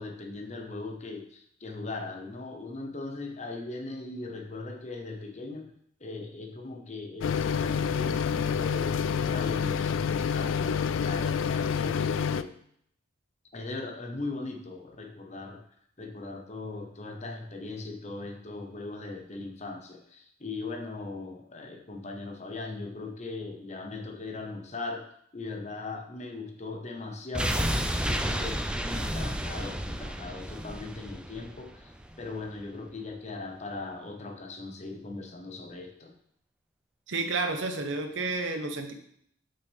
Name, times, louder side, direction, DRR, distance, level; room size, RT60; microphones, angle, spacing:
voice 1, 0.0-5.7 6.0-12.5 13.5-15.6 16.0-25.1 25.3-36.1, left 3 dB, 35° left, 4 dB, 1.0 m, -39 dB
sound 1, 7.2-12.4, left 6 dB, 75° left, 0.3 m, -28 dB
sound 2, 27.3-32.3 32.6-32.7, equal, 5° right, 0.4 m, -31 dB
voice 2, 37.1-38.9, right 3 dB, 65° right, 5 dB, 1.0 m, -30 dB
8.5 x 5.8 x 3.5 m, 0.69 s
head